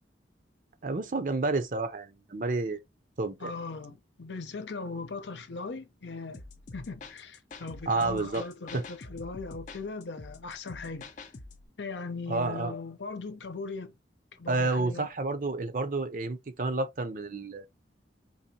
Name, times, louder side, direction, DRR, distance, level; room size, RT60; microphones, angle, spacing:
voice 1, 0.8-2.8 3.2-3.5 7.9-8.4 8.7-8.8 12.3-12.8 14.5-17.7, right 3 dB, 45° right, 0.6 m, -30 dB
voice 2, 3.4-6.4 6.7-11.1 11.8-13.9 14.4-15.1, left 4 dB, 75° left, 0.8 m, -39 dB
sound 1, 6.3-11.7, left 3 dB, 45° left, 0.6 m, -46 dB
4.1 x 3.0 x 2.8 m
head